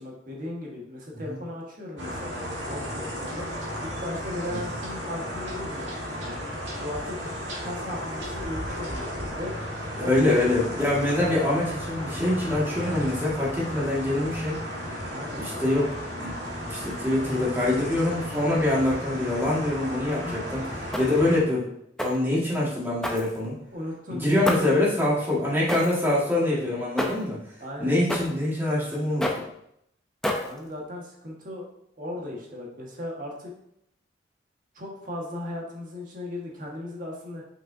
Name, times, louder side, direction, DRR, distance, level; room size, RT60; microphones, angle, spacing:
voice 1, 0.0-2.3 2.7-3.5 3.8-6.4 6.8-7.1 7.6-9.5 10.0-10.6 15.1-15.4 20.2-20.3 23.7-24.6 27.6-27.9 30.4-31.6 32.0-33.5 34.7-37.4, left 1 dB, 45° right, -3 dB, 1.6 m, -37 dB
sound 1, 2.0-21.4, equal, 80° right, 1.8 m, -34 dB
voice 2, 10.0-14.6 15.4-16.3 16.7-20.7 21.0-21.6 22.0-23.6 24.1-27.4 27.8-29.3, left 1 dB, 10° right, -6 dB, 1.9 m, -25 dB
sound 2, 20.9-21.3 22.0-22.3 23.0-23.7 24.4-24.8 25.7-26.1 27.0-27.3 28.1-28.4 29.2-29.5 30.2-30.7, left 1 dB, 5° left, 0.6 m, -29 dB
6.1 x 5.7 x 2.7 m, 0.75 s
head